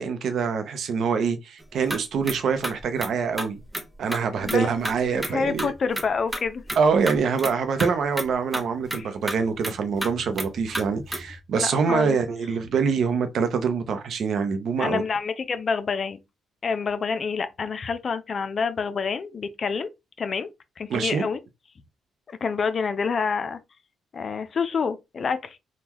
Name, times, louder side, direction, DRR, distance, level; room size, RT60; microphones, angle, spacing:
voice 1, 0.0-3.6 4.0-5.7 6.8-15.0 20.9-21.2, right 5 dB, 65° right, 0.6 m, -25 dB
sound 1, 1.6-2.0 2.2-2.4 2.6-3.8 4.1-4.6 4.8-5.3 5.6-7.5 7.8-7.9 8.2-8.3 8.5-11.4, right 1 dB, 10° right, 0.7 m, -32 dB
voice 2, 4.4-4.8 5.1-6.6 8.9-9.1 11.5-12.2 14.8-16.2 16.6-19.9 20.2-20.5 20.8-21.4 22.3-23.6 24.1-25.6, left 5 dB, 45° left, 0.4 m, -27 dB
3.6 x 2.2 x 3.0 m
cardioid pair, 90°, 0 cm